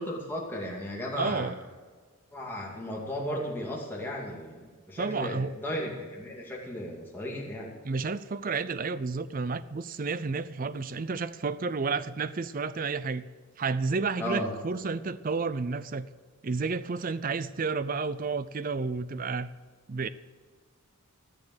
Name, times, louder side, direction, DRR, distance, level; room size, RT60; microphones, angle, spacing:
voice 1, 0.0-1.5 2.3-7.7 14.2-14.5, left 1 dB, 10° left, -3 dB, 2.4 m, -35 dB
voice 2, 1.2-1.6 5.0-5.5 7.8-13.3 13.6-16.1 16.4-19.5 19.9-20.1, right 4 dB, 40° right, 15 dB, 0.5 m, -31 dB
14.5 x 6.8 x 7.8 m, 1.5 s
head